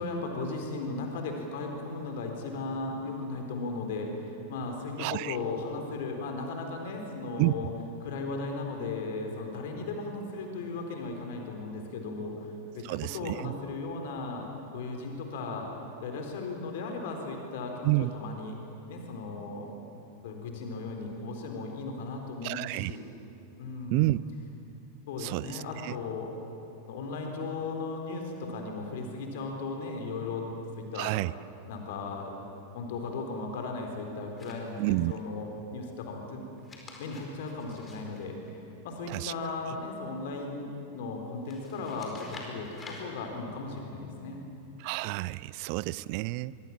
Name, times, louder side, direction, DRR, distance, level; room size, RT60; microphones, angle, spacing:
voice 1, 0.0-7.7 8.0-15.7 16.0-18.6 18.9-19.7 20.2-23.0 23.6-24.1 25.1-26.3 26.9-31.1 31.7-32.3 32.7-36.4 37.0-38.4 38.8-44.4, left 3 dB, 55° left, 3 dB, 4.0 m, -36 dB
voice 2, 5.0-5.4 7.4-7.5 12.8-13.5 17.8-18.1 22.4-23.0 23.9-24.2 25.2-25.9 30.9-31.3 34.8-35.1 39.1-39.3 44.8-46.5, right 22 dB, 45° right, 20 dB, 0.5 m, -29 dB
sound 1, 34.4-35.1 36.5-39.1 41.4-43.0, left 3 dB, 20° left, 4.6 m, -49 dB
24.0 x 24.0 x 7.4 m, 2.8 s
figure-of-eight pair, 90°, 0 cm